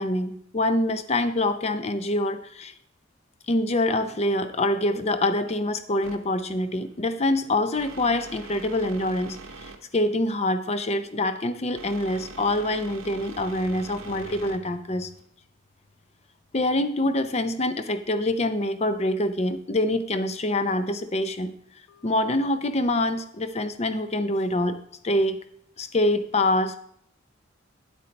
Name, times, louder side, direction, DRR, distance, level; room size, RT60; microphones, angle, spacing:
voice 1, 0.0-2.7 3.5-15.1 16.5-21.5 22.0-24.8 25.0-25.4 25.8-26.8, left 1 dB, 30° left, 10 dB, 0.5 m, -25 dB
Telephone, 4.8-5.5 6.0-6.1 7.9-8.0 8.5-8.6 13.9-14.8 21.9-22.1, equal, 80° left, 0.6 m, -44 dB
sound 1, 6.0-15.3, right 3 dB, 85° right, 1.0 m, -44 dB
9.6 x 8.1 x 3.2 m, 0.69 s
head